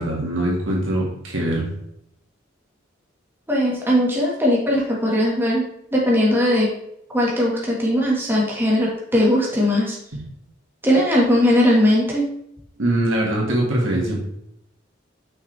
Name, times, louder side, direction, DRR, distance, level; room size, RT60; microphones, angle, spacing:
voice 1, 0.0-1.7 12.8-14.2, right 1 dB, 90° right, -2 dB, 2.1 m, -22 dB
voice 2, 3.5-6.7 7.1-10.0 10.8-12.3, equal, 10° right, -4 dB, 1.7 m, -19 dB
6.4 x 5.9 x 3.4 m, 0.76 s
head